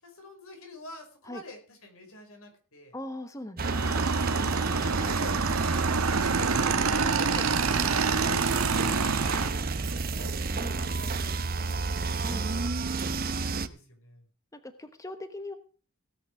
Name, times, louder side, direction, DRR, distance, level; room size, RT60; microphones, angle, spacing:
voice 1, 0.0-3.0 4.3-5.4 5.7-7.3 7.6-10.4 10.7-12.2 13.3-14.2, left 1 dB, 80° left, 4 dB, 5.2 m, -47 dB
voice 2, 2.9-3.9 7.3-7.5 10.5-10.8 12.2-12.5 14.6-15.6, left 1 dB, 15° left, 9 dB, 1.0 m, -40 dB
sound 1, 3.6-13.7, right 3 dB, 45° right, 0.8 m, -31 dB
Motorcycle / Engine, 3.6-9.5, right 5 dB, 80° right, 1.3 m, -27 dB
17.5 x 8.6 x 4.6 m, 0.38 s
head